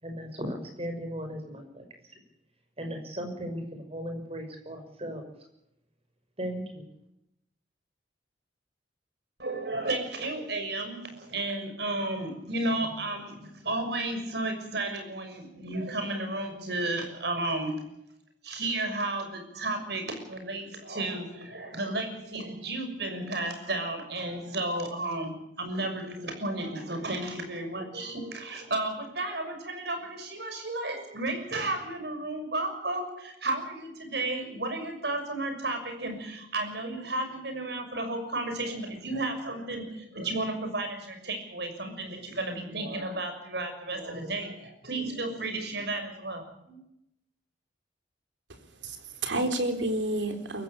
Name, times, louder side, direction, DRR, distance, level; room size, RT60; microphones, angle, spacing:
voice 1, 0.0-1.8 2.8-5.2 6.4-6.8, equal, 35° right, 5 dB, 6.1 m, -36 dB
voice 2, 9.4-17.9 18.4-46.8, right 2 dB, 60° right, 6 dB, 6.3 m, -33 dB
voice 3, 48.5-50.6, right 1 dB, 80° right, 6 dB, 3.9 m, -30 dB
23.0 x 15.5 x 8.6 m, 0.81 s
head